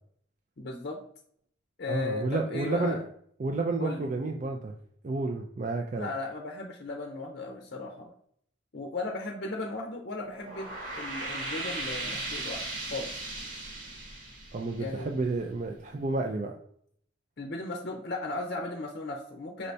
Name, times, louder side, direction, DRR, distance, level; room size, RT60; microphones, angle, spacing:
voice 1, 0.6-1.0 1.8-3.0 3.8-4.1 5.9-8.1 8.7-12.6 12.9-13.1 14.8-15.1 17.4-19.7, left 3 dB, 55° left, 2 dB, 0.6 m, -36 dB
voice 2, 1.9-3.0 3.4-4.7 5.0-6.1 14.5-16.6, right 3 dB, 40° right, 2 dB, 0.4 m, -30 dB
sound 1, 10.3-15.5, right 2 dB, 65° right, 1.3 m, -37 dB
5.2 x 3.3 x 2.7 m, 0.64 s
head